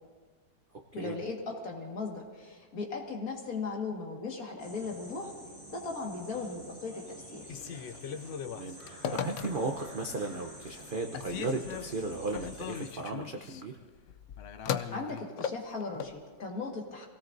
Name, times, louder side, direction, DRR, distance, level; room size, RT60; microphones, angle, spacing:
voice 1, 0.9-5.3 5.7-7.0 7.3-7.4 14.9-17.1, left 4 dB, 50° left, 0 dB, 2.2 m, -37 dB
sound 1, 4.6-12.9, equal, 10° right, 4.6 m, -49 dB
Telephone, 7.4-9.9 10.4-10.9 11.1-16.2, left 8 dB, 85° left, 0.6 m, -38 dB
voice 2, 8.5-13.7, right 3 dB, 50° right, 3 dB, 0.6 m, -35 dB
26.5 x 17.5 x 2.6 m, 1.5 s
omnidirectional pair, 2.0 m